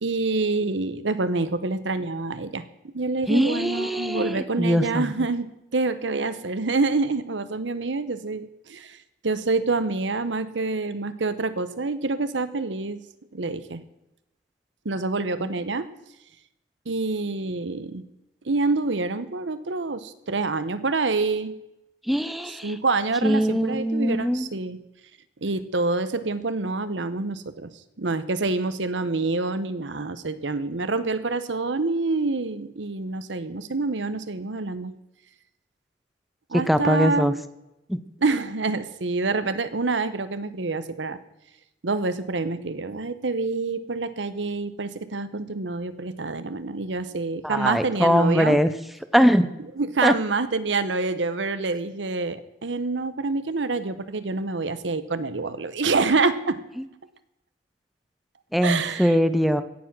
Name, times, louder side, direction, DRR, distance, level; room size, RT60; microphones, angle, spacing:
voice 1, 0.0-9.0 9.2-13.0 13.3-13.8 14.8-15.9 16.9-18.0 18.4-21.5 22.6-24.8 25.4-27.7 28.0-34.9 36.5-37.4 38.2-41.2 41.8-48.6 49.8-56.6 58.6-59.2, right 3 dB, 90° right, 12 dB, 1.0 m, -27 dB
voice 2, 3.3-5.1 15.4-15.5 22.1-22.7 23.2-24.5 36.5-37.3 37.9-38.0 47.4-48.7 49.1-49.5 50.0-50.1 58.5-59.6, equal, ahead, 10 dB, 0.7 m, -21 dB
16.5 x 7.3 x 6.1 m, 0.90 s
head